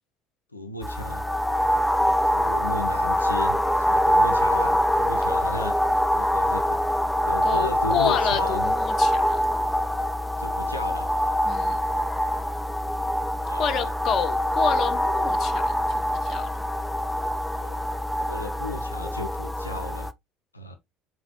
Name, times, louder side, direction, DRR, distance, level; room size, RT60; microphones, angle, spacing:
voice 1, 0.5-1.2 2.3-3.6 3.9-5.8 6.1-6.8 7.2-8.7 10.4-11.1 13.5-13.9 17.6-17.8 18.3-20.1 20.5-20.8, left 2 dB, 90° left, 0.4 m, -35 dB
sound 1, 0.8-20.1, equal, 5° left, 0.3 m, -24 dB
voice 2, 7.4-9.4 10.6-10.7 11.5-11.8 13.6-16.6, left 7 dB, 45° left, 0.7 m, -29 dB
4.6 x 3.9 x 2.8 m
figure-of-eight pair, 60°, 0 cm